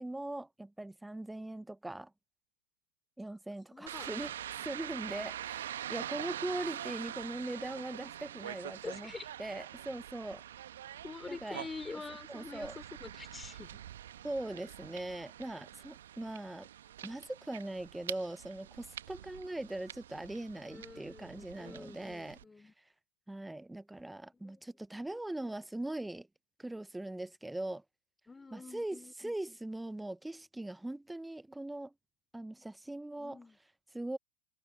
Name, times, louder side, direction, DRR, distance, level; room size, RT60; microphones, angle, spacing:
voice 1, 0.0-2.1 3.2-4.3 4.6-9.1 9.4-10.4 11.2-11.7 12.3-12.8 14.2-16.7 17.0-22.4 23.3-26.3 26.6-27.8 28.5-31.9 32.3-33.4 33.9-34.2, right 1 dB, 5° right, 1.1 m, -41 dB
voice 2, 3.7-4.1 8.8-9.3 11.0-13.8 20.7-22.7 24.3-24.6 28.3-29.4 33.2-33.6, left 4 dB, 10° left, 4.1 m, -46 dB
sound 1, 3.9-22.4, right 11 dB, 60° right, 1.6 m, -45 dB
figure-of-eight pair, 90°, 0 cm